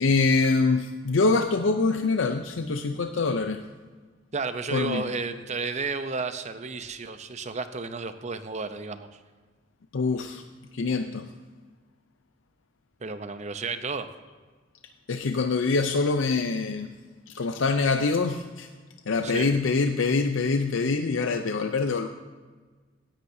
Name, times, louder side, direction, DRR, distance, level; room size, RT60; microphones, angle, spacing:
voice 1, 0.0-3.6 4.7-5.0 9.9-10.4 10.7-11.3 15.1-16.9 17.3-18.7 19.1-22.1, left 4 dB, 85° left, 6 dB, 0.6 m, -24 dB
voice 2, 4.3-9.2 13.0-14.1 19.2-19.5, right 4 dB, 35° right, 10 dB, 0.7 m, -32 dB
16.5 x 10.5 x 2.7 m, 1.4 s
head